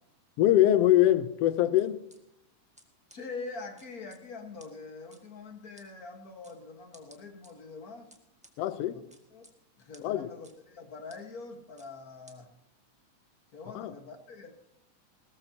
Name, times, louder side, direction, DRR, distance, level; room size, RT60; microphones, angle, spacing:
voice 1, 0.4-2.0 8.6-9.0 10.0-10.3 13.7-13.9, left 13 dB, 80° left, 1.4 m, -23 dB
sound 1, 1.8-2.2 2.8-2.9 3.1-3.2 3.8-4.2 4.6-4.7 5.1-5.2 5.8-5.9 6.4-6.6 6.9-7.5 8.1-8.5 9.1-9.5 9.9-10.0 10.4-10.5 11.1-11.2 11.8-11.9 12.3-12.4, right 1 dB, 5° right, 0.6 m, -56 dB
voice 2, 3.1-8.1 8.9-9.0 9.3-9.5 9.8-12.6 13.5-14.5, left 4 dB, 40° left, 1.4 m, -44 dB
20.5 x 18.0 x 2.9 m
omnidirectional pair, 3.5 m